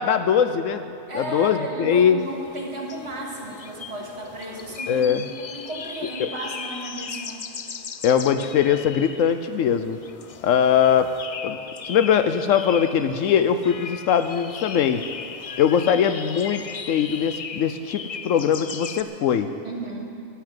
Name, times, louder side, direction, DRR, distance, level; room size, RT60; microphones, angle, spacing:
voice 1, 0.0-2.2 4.9-5.3 6.2-6.3 8.0-10.0 10.4-11.1 11.4-11.6 11.9-15.0 15.6-19.5, left 8 dB, 80° left, 9 dB, 1.0 m, -21 dB
voice 2, 1.1-5.1 5.4-7.7 19.6-20.1, right 2 dB, 55° right, -1 dB, 2.3 m, -34 dB
sound 1, 2.2-19.0, left 6 dB, 60° left, 0.3 m, -38 dB
14.5 x 8.7 x 9.1 m, 2.6 s
omnidirectional pair, 1.4 m